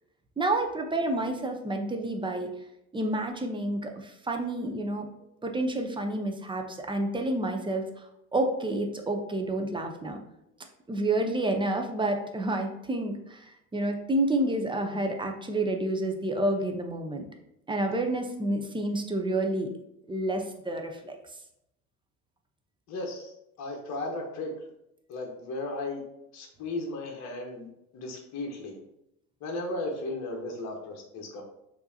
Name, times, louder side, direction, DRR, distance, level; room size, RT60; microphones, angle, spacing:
voice 1, 0.4-2.5 2.9-5.1 5.4-10.2 10.9-17.3 17.7-19.7 20.1-21.2, right 1 dB, 10° right, 3 dB, 0.7 m, -29 dB
voice 2, 22.9-24.5 25.1-26.0 26.3-27.7 27.9-28.8 29.4-31.4, left 2 dB, 40° left, 0 dB, 1.2 m, -35 dB
6.7 x 2.9 x 2.7 m, 0.82 s
hypercardioid pair, 75°, 43 cm